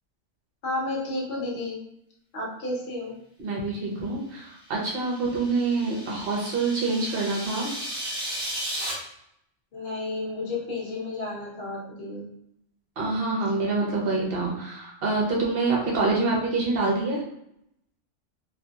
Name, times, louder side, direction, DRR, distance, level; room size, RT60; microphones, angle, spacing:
voice 1, 0.6-1.8 2.3-3.2 9.7-12.3, left 2 dB, 55° left, -3 dB, 1.1 m, -32 dB
voice 2, 3.4-7.7 13.0-17.2, right 3 dB, 55° right, -2 dB, 0.9 m, -26 dB
sound 1, 4.8-8.9, right 1 dB, 20° right, 0.8 m, -35 dB
2.7 x 2.7 x 2.3 m, 0.76 s
omnidirectional pair, 1.3 m